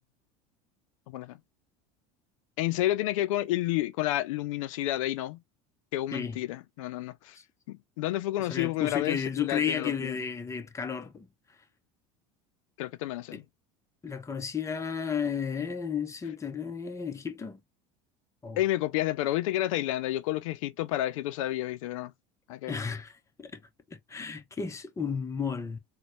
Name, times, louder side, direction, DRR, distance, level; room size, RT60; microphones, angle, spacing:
voice 1, 1.1-1.4 2.6-5.4 5.9-7.4 7.7-10.2 12.8-13.5 18.6-22.1 22.5-22.8, left 15 dB, 90° left, 0.5 m, -30 dB
voice 2, 8.5-11.3 13.3-13.4 14.0-17.6 18.4-18.6 22.7-23.1 23.4-23.6 23.9-25.8, left 6 dB, 20° left, 0.8 m, -33 dB
4.0 x 2.2 x 3.1 m
supercardioid pair, 110°, 16 cm